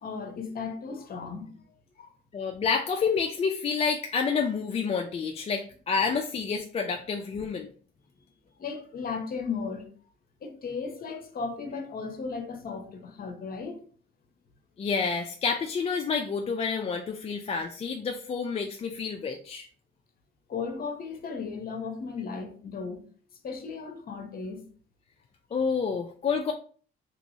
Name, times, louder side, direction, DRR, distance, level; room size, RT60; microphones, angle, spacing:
voice 1, 0.0-1.5 2.0-2.1 8.6-9.9 10.4-13.8 20.5-23.1 23.4-24.7, left 5 dB, 50° left, 0.8 m, -35 dB
voice 2, 2.3-7.7 14.8-19.7 25.5-26.5, left 5 dB, 30° left, 0.4 m, -29 dB
3.0 x 2.9 x 2.7 m
cardioid pair, 90°, 20 cm